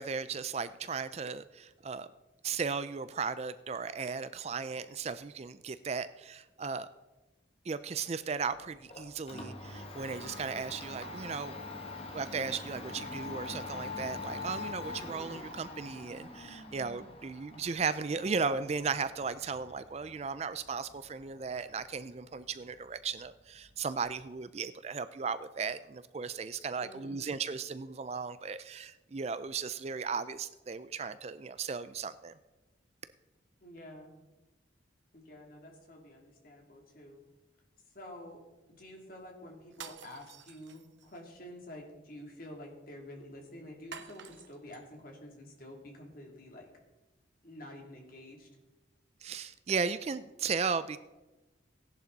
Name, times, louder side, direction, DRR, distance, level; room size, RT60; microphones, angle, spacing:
voice 1, 0.0-2.1 2.4-6.9 7.7-11.6 12.1-32.3 49.2-51.0, right 5 dB, 35° right, 14 dB, 0.4 m, -36 dB
Domestic sounds home sounds, 8.4-24.3, left 3 dB, 30° left, 1.5 m, -45 dB
voice 2, 26.8-27.3 33.6-34.1 35.1-37.2 37.9-38.4 38.7-46.7 47.4-48.5, left 1 dB, 45° left, 0 dB, 2.9 m, -49 dB
sound 1, 39.7-41.2 43.9-44.8, right 6 dB, 70° right, 1.0 m, -49 dB
16.5 x 11.0 x 4.1 m, 1.1 s
head